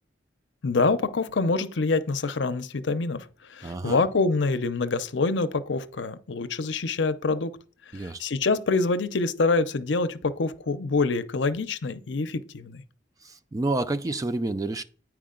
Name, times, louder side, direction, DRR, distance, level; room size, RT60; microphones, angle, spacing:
voice 1, 0.6-7.6 7.9-12.8, left 3 dB, 75° left, 0.6 m, -26 dB
voice 2, 3.6-4.1 7.9-8.2 13.2-14.8, right 2 dB, 20° right, 0.3 m, -29 dB
9.4 x 4.8 x 3.8 m
head